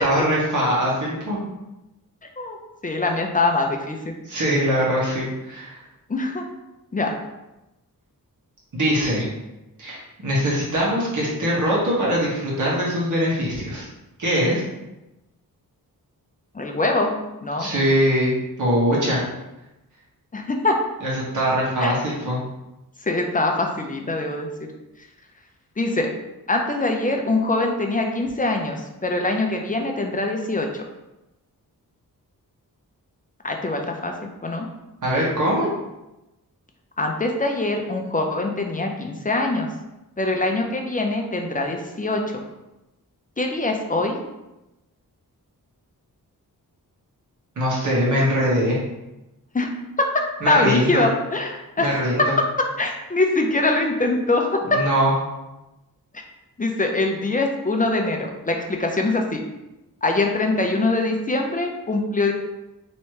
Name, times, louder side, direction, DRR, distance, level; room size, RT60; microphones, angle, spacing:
voice 1, 0.0-1.4 4.2-5.8 8.7-9.3 9.8-13.8 14.2-14.6 17.6-18.3 18.6-19.2 21.0-22.4 35.0-35.7 47.5-48.8 50.4-51.0 51.8-52.2 54.7-55.1, equal, 55° right, -6 dB, 1.5 m, -22 dB
voice 2, 2.8-4.1 6.1-6.4 6.9-7.1 16.5-17.1 17.4-17.7 20.3-20.8 21.8-22.0 23.0-24.7 25.8-26.1 26.5-30.8 33.4-34.1 34.4-34.7 37.0-39.7 40.2-42.2 43.4-44.2 49.5-51.9 52.8-54.8 56.6-59.4 60.0-62.3, left 2 dB, 25° left, 2 dB, 0.6 m, -23 dB
3.2 x 3.1 x 4.7 m, 0.96 s
wide cardioid pair, 115°, 36 cm